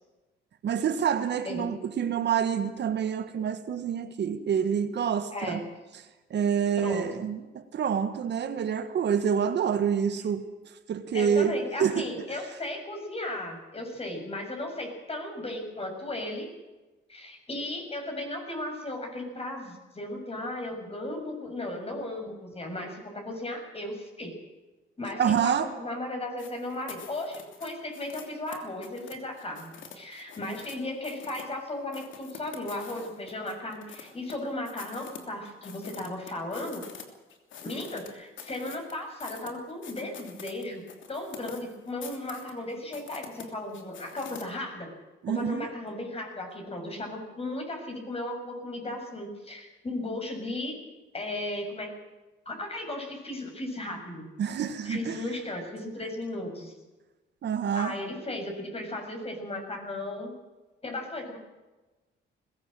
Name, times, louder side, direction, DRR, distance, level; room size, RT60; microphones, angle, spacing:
voice 1, 0.6-5.6 6.3-10.4 10.9-12.1 25.2-25.7 45.2-45.7 54.4-55.2 57.4-58.0, right 7 dB, 60° right, 1.6 m, -27 dB
voice 2, 5.3-5.7 6.8-7.2 11.1-16.5 17.1-24.3 25.0-36.9 37.6-40.8 41.1-44.9 45.3-50.7 51.1-51.9 52.5-54.3 54.8-56.7 57.8-60.3 60.8-61.4, left 1 dB, 30° left, 7.0 m, -36 dB
sound 1, 26.4-30.8 31.0-31.5 31.9-34.4 34.7-37.0 37.3-44.4, left 7 dB, 75° left, 3.1 m, -46 dB
20.5 x 16.5 x 7.8 m
cardioid pair, 90°, 20 cm